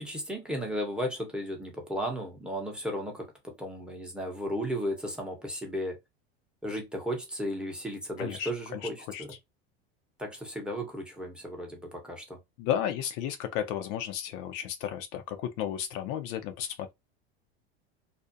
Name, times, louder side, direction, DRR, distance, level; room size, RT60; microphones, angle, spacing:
voice 1, 0.0-6.0 6.6-9.3 10.2-12.4, equal, 5° right, 0.8 m, -35 dB
voice 2, 8.2-9.2 12.6-16.9, left 10 dB, 60° left, 0.5 m, -33 dB
2.4 x 2.0 x 2.5 m
supercardioid pair, 105°, 32 cm